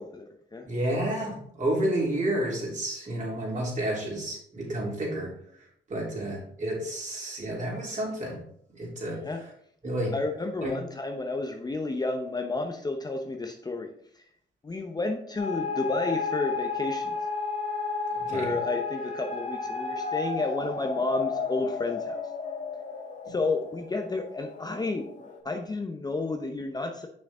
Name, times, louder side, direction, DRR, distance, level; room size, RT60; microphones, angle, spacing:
voice 1, 0.0-0.7 9.1-9.4 10.1-13.9 14.6-17.2 18.3-22.2 23.3-27.1, left 3 dB, 20° left, 3 dB, 0.7 m, -31 dB
voice 2, 0.6-5.3 5.9-8.4 8.7-9.2 9.8-10.1 10.6-10.8 18.2-18.5 23.3-23.4, right 1 dB, 40° right, -3 dB, 3.3 m, -30 dB
sound 1, 15.4-25.4, left 4 dB, 35° left, 1.7 m, -33 dB
6.3 x 6.2 x 3.6 m, 0.65 s
cardioid pair, 90°, 20 cm